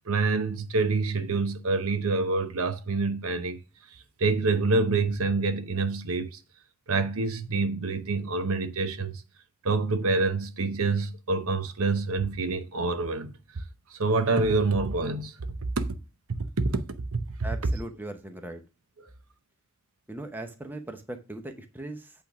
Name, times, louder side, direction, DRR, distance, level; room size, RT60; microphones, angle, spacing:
voice 1, 0.1-3.6 4.2-6.4 6.9-9.2 9.6-13.6 13.9-15.3 15.8-16.0 16.6-16.8 17.1-17.2 19.0-19.1, right 3 dB, 80° right, 0.8 m, -26 dB
voice 2, 17.4-18.6 20.1-22.2, right 1 dB, 10° right, 0.7 m, -39 dB
8.4 x 3.5 x 5.9 m
head